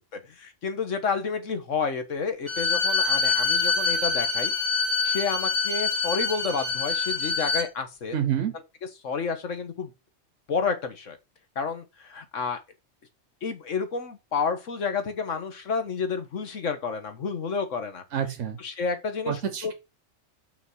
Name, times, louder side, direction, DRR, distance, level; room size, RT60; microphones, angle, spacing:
voice 1, 0.3-4.5 5.0-8.2 9.0-9.9 10.5-11.2 11.5-12.6 13.4-18.0 18.6-19.7, left 5 dB, 85° left, 1.7 m, -30 dB
Bowed string instrument, 2.5-7.7, left 4 dB, 35° left, 2.1 m, -25 dB
voice 2, 8.1-8.6 18.1-18.6 19.3-19.7, right 9 dB, 70° right, 1.3 m, -28 dB
6.0 x 4.1 x 6.2 m
omnidirectional pair, 1.3 m